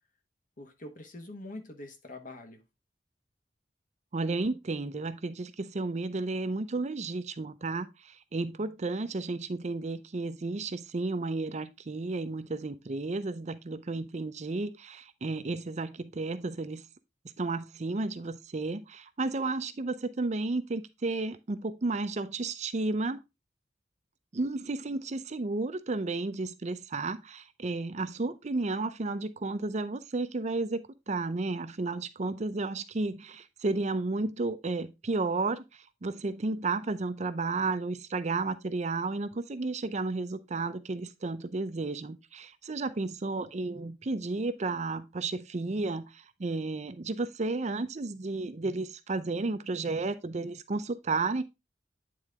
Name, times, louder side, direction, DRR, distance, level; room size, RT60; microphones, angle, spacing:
voice 1, 0.6-2.6, left 2 dB, 50° left, 1.2 m, -44 dB
voice 2, 4.1-16.8 17.4-23.2 24.3-51.4, right 3 dB, 40° right, 0.5 m, -32 dB
9.1 x 3.9 x 3.5 m
head